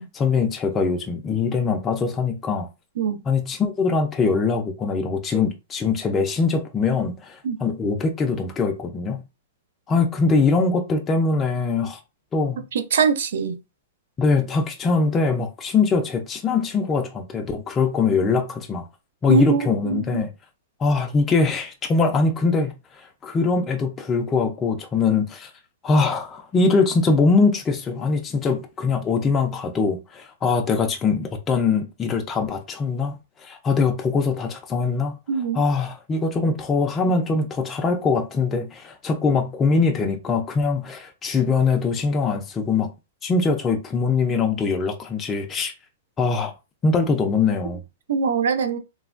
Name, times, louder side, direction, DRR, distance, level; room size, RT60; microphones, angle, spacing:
voice 1, 0.2-2.7 3.3-9.2 9.9-12.0 12.3-12.6 14.2-18.8 19.2-20.3 20.8-25.5 25.8-35.2 35.5-42.9 43.2-45.7 46.2-46.5 46.8-47.8, left 4 dB, 10° left, 0.3 m, -22 dB
voice 2, 12.7-13.6 19.3-20.2 35.3-35.6 48.1-48.8, right 6 dB, 65° right, 0.4 m, -22 dB
3.2 x 2.2 x 2.3 m
hypercardioid pair, 175°, 0 cm